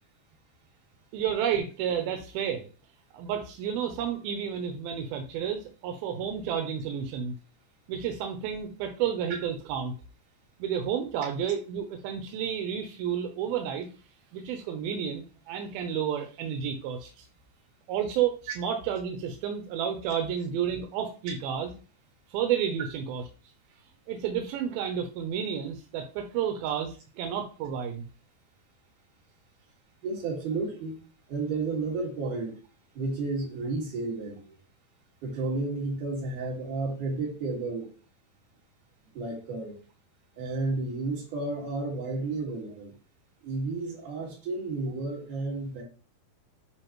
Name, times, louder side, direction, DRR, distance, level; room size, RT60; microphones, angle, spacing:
voice 1, 1.1-2.7 3.1-7.3 7.9-9.9 10.6-13.9 14.3-17.1 17.9-21.7 22.3-23.2 24.1-28.0, right 8 dB, 90° right, 5 dB, 2.6 m, -31 dB
voice 2, 30.0-31.0 31.3-32.6 32.9-34.5 35.2-37.9 39.1-39.8 40.4-42.9 43.4-45.8, right 3 dB, 60° right, -1 dB, 3.4 m, -32 dB
9.7 x 4.0 x 3.0 m, 0.35 s
omnidirectional pair, 4.2 m